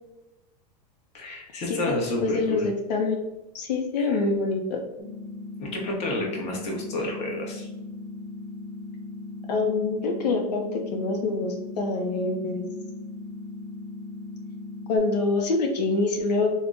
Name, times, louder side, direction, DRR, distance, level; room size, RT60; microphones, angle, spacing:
voice 1, 1.1-2.7 4.0-4.2 5.6-7.7, left 1 dB, 30° left, -1 dB, 0.8 m, -30 dB
voice 2, 1.7-3.2 3.5-4.8 9.5-12.7 14.9-16.5, left 3 dB, 90° left, 3 dB, 0.5 m, -26 dB
sound 1, 5.0-15.0, left 2 dB, 25° right, 0.7 m, -38 dB
3.4 x 2.1 x 2.4 m, 0.98 s
hypercardioid pair, 120°, 21 cm